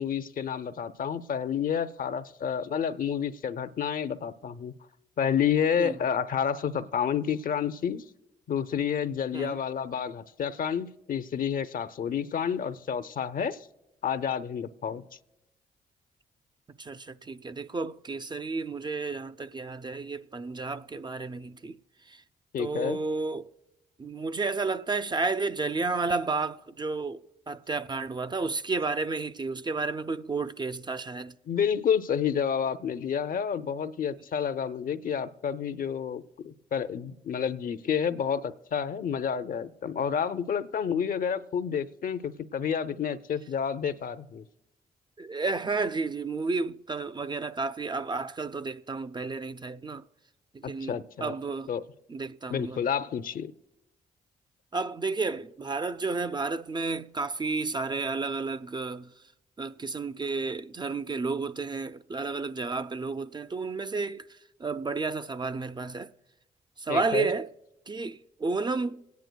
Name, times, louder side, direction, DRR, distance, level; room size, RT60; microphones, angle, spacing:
voice 1, 0.0-4.7 5.2-8.0 8.5-13.7 14.0-15.0 22.5-23.0 31.5-44.4 50.6-51.3 51.7-51.8 52.5-53.5 66.9-67.3, left 7 dB, 55° left, 0.6 m, -29 dB
voice 2, 16.8-21.8 22.1-22.2 22.6-23.5 24.0-31.4 45.2-50.0 50.5-51.7 52.1-52.9 54.7-59.1 59.6-66.1 66.8-67.5 67.9-69.0, right 3 dB, 25° right, 0.4 m, -32 dB
27.0 x 9.3 x 2.2 m
supercardioid pair, 45°, 17 cm